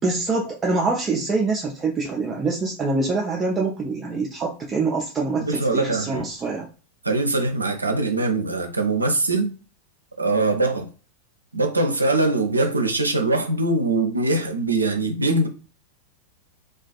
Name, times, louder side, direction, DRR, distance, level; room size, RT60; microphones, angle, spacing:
voice 1, 0.0-6.7, right 3 dB, 20° right, 0.4 m, -25 dB
voice 2, 5.4-6.2 7.0-9.5 10.2-10.9 11.5-15.5, right 2 dB, 80° right, 0.4 m, -22 dB
2.4 x 2.3 x 2.3 m
figure-of-eight pair, 90°, 0 cm